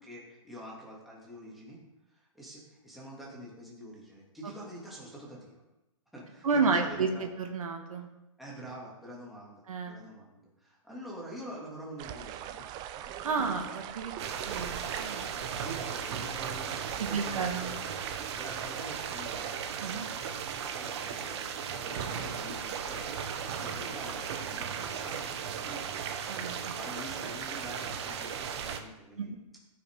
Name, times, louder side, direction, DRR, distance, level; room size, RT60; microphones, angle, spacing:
voice 1, 0.0-1.8 2.1-5.6 6.1-7.2 8.4-12.7 13.3-13.4 14.2-14.6 15.1-18.0 18.4-19.6 20.7-26.1 26.7-29.3, right 1 dB, ahead, -5 dB, 2.8 m, -46 dB
voice 2, 6.4-7.1 7.4-8.1 9.7-10.0 13.2-14.1 14.4-15.4 17.0-17.7 19.8-20.1 26.3-26.7 29.2-29.3, right 5 dB, 80° right, 4 dB, 1.8 m, -31 dB
sound 1, 12.0-19.5, right 11 dB, 25° right, 0.5 m, -43 dB
sound 2, 14.2-28.8, right 7 dB, 50° right, 1.2 m, -36 dB
15.0 x 6.0 x 4.8 m, 0.98 s
hypercardioid pair, 150°, 18 cm